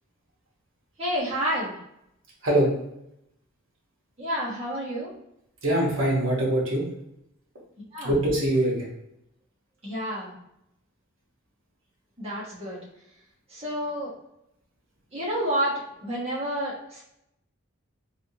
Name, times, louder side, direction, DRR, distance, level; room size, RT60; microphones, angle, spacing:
voice 1, 1.0-1.7 4.2-5.1 7.9-8.1 9.8-10.3 12.2-12.8 13.5-14.1 15.1-17.0, equal, 30° right, -7 dB, 1.1 m, -29 dB
voice 2, 5.6-6.8 8.0-8.9, right 1 dB, 65° right, -3 dB, 1.0 m, -23 dB
3.4 x 2.5 x 2.7 m, 0.80 s
head